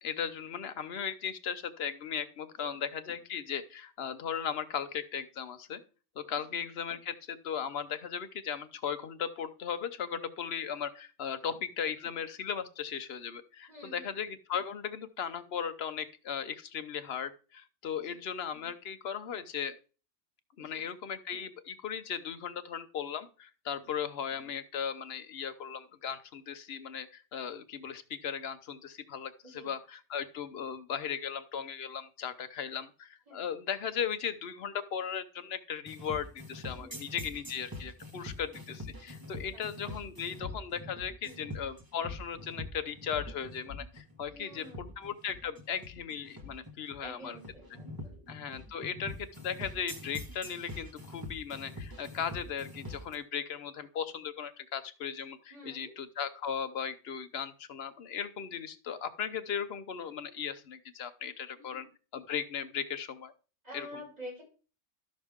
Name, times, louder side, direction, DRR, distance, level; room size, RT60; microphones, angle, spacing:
voice 1, 0.0-5.8 6.2-19.7 20.6-47.4 48.3-61.9 62.1-63.3 63.7-63.9, left 7 dB, 60° left, 10 dB, 1.0 m, -37 dB
voice 2, 13.7-14.1 17.9-18.1 20.6-20.9 23.8-24.0 29.4-29.7 33.3-33.4 36.7-37.0 39.4-39.6 41.2-41.6 44.3-44.9 47.0-48.4 55.5-55.9 61.5-61.9 63.6-64.4, equal, 30° right, -5 dB, 6.5 m, -49 dB
sound 1, 35.9-53.1, left 1 dB, 15° right, 1.5 m, -44 dB
12.5 x 6.4 x 3.5 m, 0.36 s
omnidirectional pair, 1.3 m